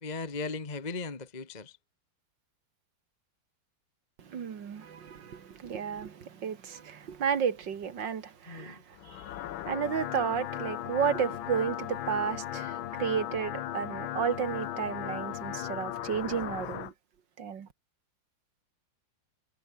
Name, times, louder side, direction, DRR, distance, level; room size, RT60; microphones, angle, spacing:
voice 1, 0.0-1.8 8.5-8.8, left 4 dB, 25° left, 1.6 m, -37 dB
voice 2, 4.2-9.3 9.6-16.9 17.4-17.7, right 7 dB, 65° right, 2.3 m, -32 dB
sound 1, 8.9-16.9, left 12 dB, 85° left, 1.7 m, -37 dB
omnidirectional pair, 2.1 m